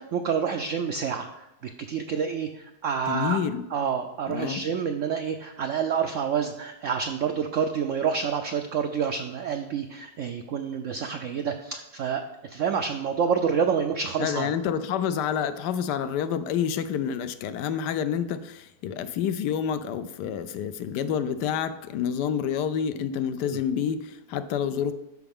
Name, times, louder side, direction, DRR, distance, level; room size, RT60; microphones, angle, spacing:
voice 1, 0.0-3.4 3.7-14.5 23.4-23.6, right 7 dB, 80° right, 6 dB, 0.7 m, -28 dB
voice 2, 3.1-3.7 4.3-4.6 14.2-24.9, left 8 dB, 80° left, 12 dB, 1.2 m, -28 dB
12.5 x 4.9 x 3.6 m, 0.96 s
omnidirectional pair, 1.8 m